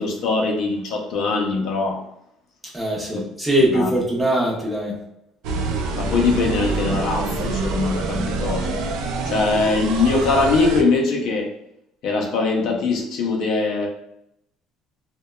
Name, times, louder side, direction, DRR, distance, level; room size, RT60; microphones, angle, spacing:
voice 1, 0.0-2.0 3.1-3.2 3.7-3.9 6.0-8.8 9.2-11.5 12.0-13.9, left 3 dB, 65° left, 0 dB, 0.4 m, -22 dB
voice 2, 2.7-4.9, right 1 dB, 5° right, -4 dB, 0.6 m, -21 dB
sound 1, 5.4-10.8, right 3 dB, 75° right, 0.3 m, -26 dB
2.7 x 2.1 x 2.2 m, 0.81 s
cardioid pair, 140°, 0 cm